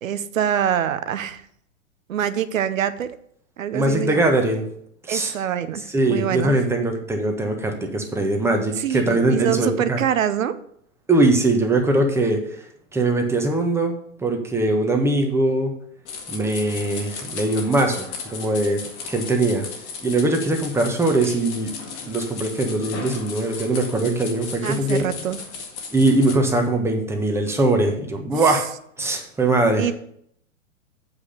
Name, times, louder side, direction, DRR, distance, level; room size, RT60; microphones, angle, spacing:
voice 1, 0.0-1.4 2.1-3.1 3.6-4.3 5.1-6.5 8.8-10.5 24.6-25.4 28.5-28.6 29.8-29.9, right 9 dB, 70° right, 13 dB, 0.9 m, -25 dB
voice 2, 3.7-4.6 5.0-5.3 5.9-10.0 11.1-12.6 12.9-13.9 14.2-15.7 16.3-18.8 19.1-19.6 20.0-21.7 22.1-25.0 25.9-28.6 29.0-29.9, right 2 dB, 5° right, 3 dB, 1.3 m, -21 dB
sound 1, 16.0-26.4, left 5 dB, 55° left, 1.9 m, -35 dB
8.3 x 4.9 x 6.5 m, 0.67 s
hypercardioid pair, 110°, 41 cm